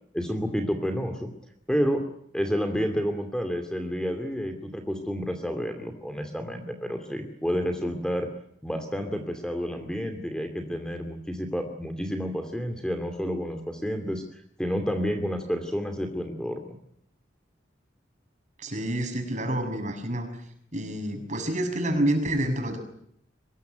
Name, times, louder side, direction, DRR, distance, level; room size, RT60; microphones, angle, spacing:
voice 1, 0.1-1.3 1.7-2.0 2.3-8.3 8.6-16.7, equal, 5° left, 6 dB, 2.5 m, -30 dB
voice 2, 18.6-20.3 20.7-22.8, right 1 dB, 40° right, 5 dB, 6.7 m, -28 dB
24.5 x 21.0 x 9.2 m, 0.70 s
head